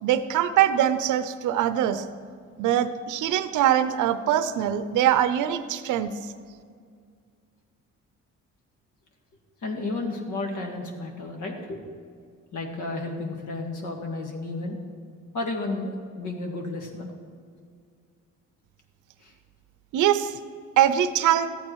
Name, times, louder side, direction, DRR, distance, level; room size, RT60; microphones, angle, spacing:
voice 1, 0.0-2.0 2.6-6.1 19.9-20.4 20.8-21.5, right 11 dB, 80° right, 12 dB, 0.6 m, -22 dB
voice 2, 9.6-11.8 12.5-14.8 15.3-17.1 19.2-19.3, left 2 dB, 75° left, 2 dB, 2.0 m, -32 dB
13.5 x 8.8 x 4.6 m, 2.1 s
cardioid pair, 90°, 30 cm